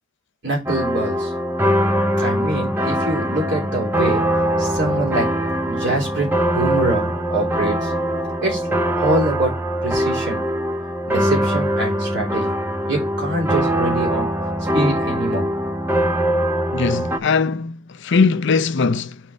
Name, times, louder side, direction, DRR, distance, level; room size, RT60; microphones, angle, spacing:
voice 1, 0.4-1.3 2.2-4.2 4.6-5.3 5.7-7.9 8.4-8.6 9.0-9.5 9.8-10.4 11.1-12.5 12.8-14.3 14.7-15.5, right 2 dB, 60° right, 3.7 m, -24 dB
sound 1, 0.7-17.2, equal, 10° right, 0.6 m, -22 dB
voice 2, 16.7-19.2, left 4 dB, 60° left, 0.5 m, -20 dB
5.7 x 4.6 x 5.2 m
head